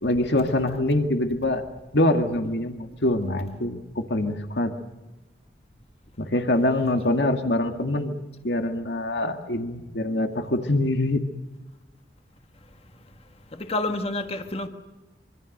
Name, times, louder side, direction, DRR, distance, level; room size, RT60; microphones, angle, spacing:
voice 1, 0.0-1.6 1.9-4.7 6.2-8.2 8.4-11.2, left 1 dB, 80° left, 2.1 m, -24 dB
voice 2, 13.5-14.7, left 2 dB, 35° left, 1.5 m, -28 dB
25.5 x 24.5 x 6.6 m
head